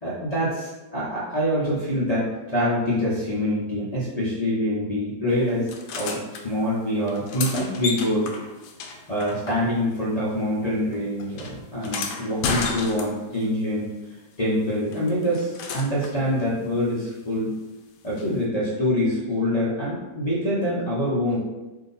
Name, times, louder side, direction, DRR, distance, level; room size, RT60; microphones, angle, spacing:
voice 1, 0.0-8.3 9.1-13.9 14.4-17.5 18.0-21.4, equal, 50° left, -10 dB, 0.4 m, -25 dB
sound 1, 5.7-6.4 7.0-10.0 10.3-13.4 14.9-16.2 18.2-18.3, left 4 dB, 75° left, 1.3 m, -32 dB
3.7 x 2.7 x 4.0 m, 1.1 s
omnidirectional pair, 2.2 m